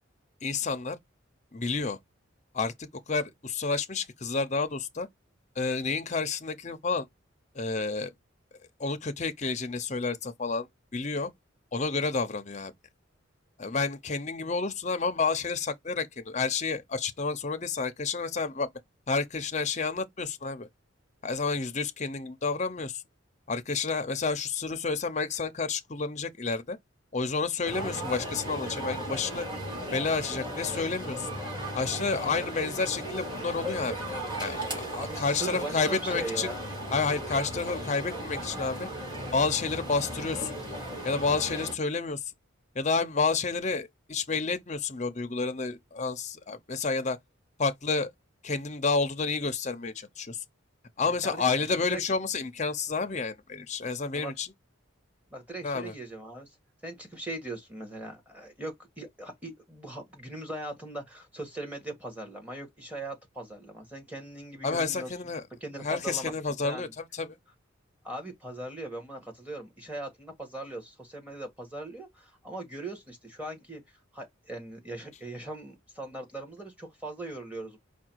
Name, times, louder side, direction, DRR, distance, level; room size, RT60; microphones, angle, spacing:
voice 1, 0.4-1.0 1.5-2.0 2.5-5.1 5.6-7.1 7.5-8.1 8.8-11.3 11.7-12.7 13.6-18.7 19.1-20.7 21.2-23.0 23.5-26.8 27.1-29.5 29.9-31.3 31.7-34.0 34.4-36.5 36.9-38.9 39.3-40.6 41.0-42.2 42.7-47.2 47.6-48.1 48.4-50.4 51.0-54.5 55.6-55.9 64.6-65.4 65.8-67.4, left 4 dB, 35° left, 0.6 m, -30 dB
sound 1, 27.6-41.7, equal, 20° right, 2.4 m, -36 dB
voice 2, 34.9-36.7 51.0-51.5 51.9-52.1 54.1-54.3 55.3-56.5 56.8-65.1 65.6-66.3 66.6-66.9 68.0-77.8, right 2 dB, 5° right, 1.4 m, -40 dB
4.7 x 2.3 x 4.5 m
head